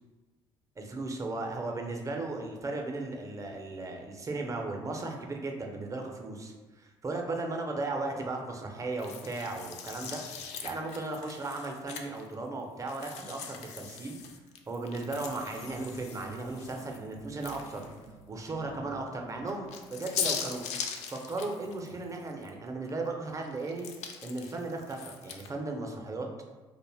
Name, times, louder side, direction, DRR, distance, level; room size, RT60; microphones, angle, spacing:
voice 1, 0.8-10.2 10.6-14.2 14.7-17.9 18.3-20.7 21.1-23.9 24.2-26.3, right 2 dB, 25° right, 2 dB, 0.5 m, -36 dB
sound 1, 9.0-12.3 12.9-18.0 18.5-18.6 19.4-22.5 22.9-25.5, left 7 dB, 65° left, 0.4 m, -40 dB
sound 2, 14.8-21.6, right 2 dB, 85° right, 0.4 m, -53 dB
2.5 x 2.1 x 3.3 m, 1.2 s
supercardioid pair, 75°, 12 cm